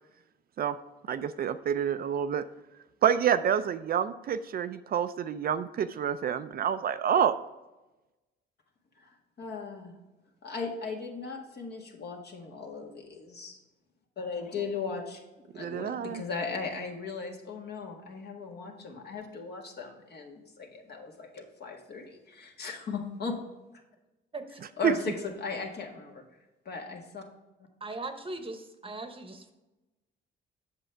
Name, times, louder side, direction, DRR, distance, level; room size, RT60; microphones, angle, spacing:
voice 1, 1.1-2.4 3.0-7.4 15.5-16.2 24.8-24.9, right 8 dB, 50° right, 11 dB, 0.4 m, -28 dB
voice 2, 9.0-9.9 10.4-13.6 14.2-15.2 15.5-23.4 24.8-26.2 26.6-27.2, left 5 dB, 55° left, 1 dB, 1.7 m, -37 dB
voice 3, 27.8-29.5, right 2 dB, 25° right, 7 dB, 0.9 m, -39 dB
7.9 x 6.9 x 3.4 m, 1.1 s
cardioid pair, 90°, 20 cm